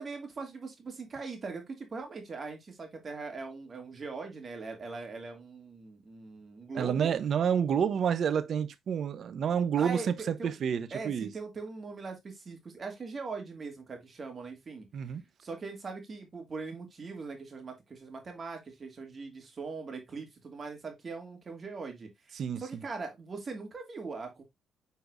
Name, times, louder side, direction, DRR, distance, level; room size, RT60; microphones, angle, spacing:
voice 1, 0.0-7.1 7.5-7.7 9.8-10.5 10.9-14.9 15.4-24.4, right 4 dB, 40° right, 2.4 m, -41 dB
voice 2, 6.7-11.3 14.9-15.2 22.3-22.8, right 8 dB, 60° right, 0.9 m, -29 dB
8.2 x 4.6 x 2.6 m
cardioid pair, 90°, 0 cm